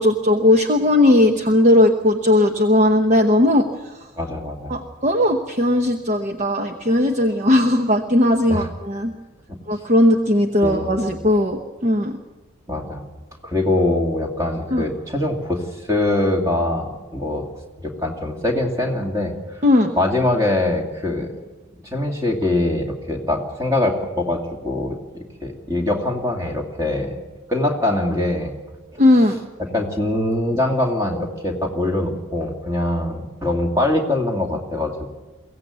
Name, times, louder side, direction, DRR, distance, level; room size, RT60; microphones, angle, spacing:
voice 1, 0.0-3.7 4.7-9.1 9.7-12.1 14.7-14.8 19.6-19.9 29.0-29.4, left 1 dB, 35° right, 5 dB, 1.0 m, -17 dB
voice 2, 4.2-4.8 8.5-8.7 9.5-9.6 10.6-11.1 12.7-13.0 13.4-17.5 17.8-19.4 20.0-21.3 21.8-27.1 27.5-28.5 29.6-35.1, left 1 dB, 15° right, 1 dB, 2.4 m, -23 dB
23.0 x 16.0 x 8.2 m, 1.2 s
head